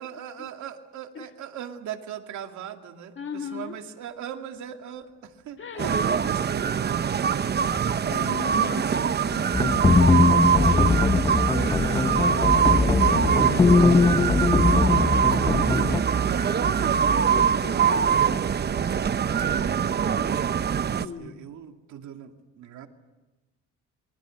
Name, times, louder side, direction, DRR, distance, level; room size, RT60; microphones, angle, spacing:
voice 1, 0.0-8.0 19.2-20.3 20.8-22.9, right 9 dB, 75° right, 5 dB, 2.4 m, -40 dB
voice 2, 3.2-3.8 5.6-6.0 8.1-11.1 11.6-18.5 20.9-21.5, left 6 dB, 40° left, 6 dB, 2.0 m, -39 dB
Thunderstorm, 4.1-4.2 4.6-4.7 4.9-18.6, left 1 dB, ahead, 6.7 m, -50 dB
sound 1, 5.8-21.1, right 7 dB, 35° right, 0.8 m, -23 dB
sound 2, 9.5-16.0, left 4 dB, 15° left, 0.8 m, -21 dB
27.5 x 24.0 x 6.5 m, 1.1 s
cardioid pair, 105°, 29 cm